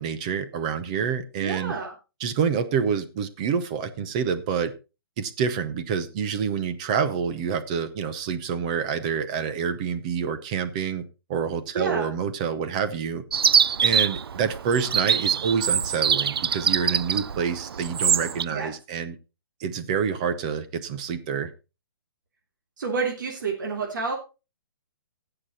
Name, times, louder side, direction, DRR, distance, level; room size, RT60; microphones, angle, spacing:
voice 1, 0.0-1.7 2.2-4.7 5.2-11.0 11.3-13.2 13.8-19.1 19.6-21.5, right 6 dB, 20° right, 11 dB, 0.8 m, -27 dB
voice 2, 1.4-1.9 11.7-12.1 18.5-18.7 22.8-24.1, right 4 dB, 55° right, 0 dB, 3.2 m, -29 dB
Chirp tweet, 13.3-18.4, right 7 dB, 80° right, 0.5 m, -24 dB
16.5 x 6.8 x 4.2 m, 0.30 s
hypercardioid pair, 175°, 13 cm